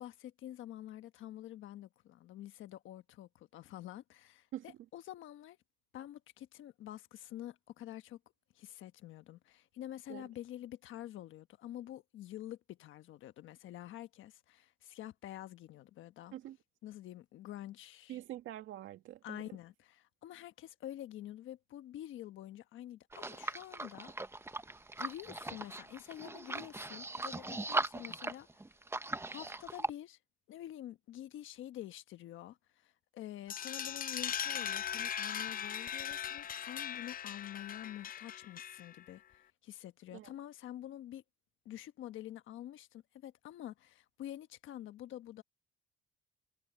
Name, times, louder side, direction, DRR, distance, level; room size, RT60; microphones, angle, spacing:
voice 1, 0.0-5.6 5.9-8.2 8.5-16.3 16.8-18.2 19.2-24.1 25.0-28.5 29.3-30.2 30.5-41.2 41.6-45.4, left 12 dB, 80° left, 1.3 m, -48 dB
voice 2, 18.1-19.5 40.1-40.3, right 13 dB, 85° right, 2.2 m, -45 dB
sound 1, 23.1-29.9, right 2 dB, 10° right, 0.9 m, -39 dB
sound 2, 33.5-39.0, left 9 dB, 45° left, 0.6 m, -39 dB
cardioid pair, 90°, 20 cm